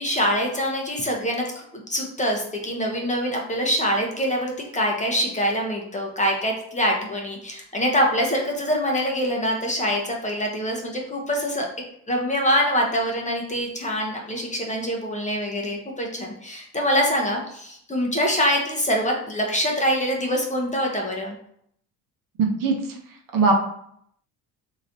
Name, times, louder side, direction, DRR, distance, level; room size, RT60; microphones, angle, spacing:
voice 1, 0.0-1.6 1.9-11.7 12.1-21.4, equal, 15° left, 0 dB, 0.8 m, -24 dB
voice 2, 22.4-22.7 23.3-23.5, right 4 dB, 50° right, 2 dB, 0.9 m, -19 dB
3.0 x 2.8 x 2.6 m, 0.69 s
hypercardioid pair, 70°, 43 cm